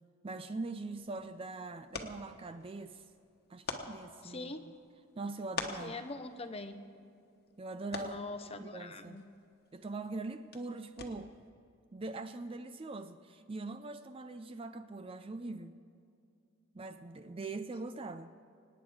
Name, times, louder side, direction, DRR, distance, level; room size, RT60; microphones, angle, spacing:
voice 1, 0.2-3.0 3.5-4.7 5.2-5.9 7.6-8.2 8.6-9.2 9.7-11.3 11.9-15.7 16.7-18.3, right 3 dB, 25° right, 10 dB, 0.4 m, -42 dB
sound 1, 0.8-11.5, left 4 dB, 45° left, 1.3 m, -48 dB
voice 2, 4.2-4.6 5.8-6.7 8.0-9.2, left 2 dB, 30° left, 8 dB, 0.8 m, -43 dB
25.5 x 9.6 x 4.9 m, 2.5 s
head